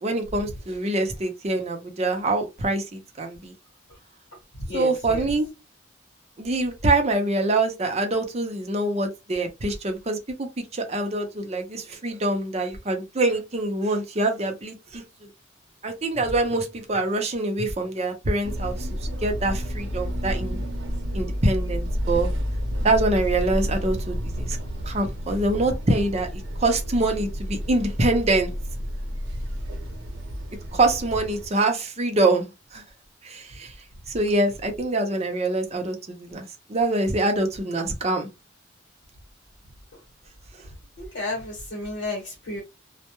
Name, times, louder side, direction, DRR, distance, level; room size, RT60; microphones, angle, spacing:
voice 1, 0.0-3.5 4.7-5.5 6.4-15.3 15.8-18.9 19.2-20.6 21.1-22.3 22.8-24.6 24.9-26.3 26.6-28.5 30.7-32.5 32.7-32.8 33.2-33.7 34.1-38.3, right 2 dB, 35° right, 0.6 m, -25 dB
voice 2, 4.7-5.3 39.9-40.0 41.0-42.6, left 2 dB, 75° left, 1.0 m, -32 dB
sound 1, 18.4-31.5, equal, 90° right, 0.7 m, -30 dB
2.2 x 2.1 x 2.9 m
head